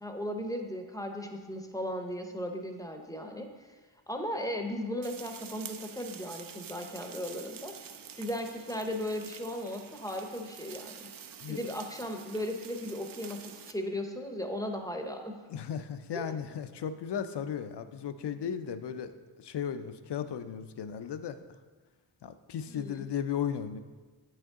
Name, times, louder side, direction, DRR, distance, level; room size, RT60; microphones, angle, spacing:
voice 1, 0.0-3.8 4.1-7.8 8.1-11.1 11.5-15.4 16.1-16.4 22.7-23.1, left 1 dB, 10° left, 4 dB, 0.6 m, -36 dB
sound 1, 5.0-13.7, right 8 dB, 50° right, 0.4 m, -47 dB
voice 2, 15.5-19.1 19.4-21.4 22.2-23.8, left 8 dB, 60° left, 11 dB, 0.5 m, -35 dB
8.5 x 6.5 x 3.6 m, 1.4 s
wide cardioid pair, 115°, 47 cm